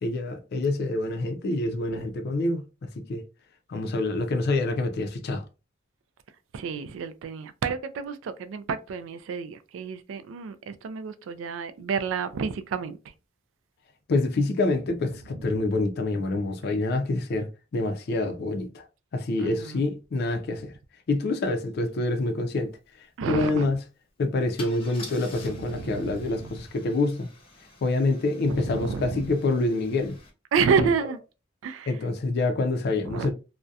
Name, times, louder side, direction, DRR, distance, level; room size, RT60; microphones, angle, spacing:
voice 1, 0.0-3.2 3.7-5.4 14.1-18.8 19.1-20.7 21.1-22.7 23.3-23.8 24.2-27.3 27.8-30.2 31.9-33.3, left 2 dB, 55° left, 0.4 m, -26 dB
voice 2, 6.5-13.0 15.0-15.6 19.4-19.9 23.2-23.7 25.4-26.5 28.5-29.3 30.5-31.2 31.6-32.1 33.0-33.3, right 5 dB, 80° right, 0.3 m, -30 dB
Car / Engine starting / Idling, 22.0-22.1 22.3-22.6 24.6-30.3, left 3 dB, 30° left, 0.7 m, -48 dB
2.6 x 2.1 x 2.3 m
head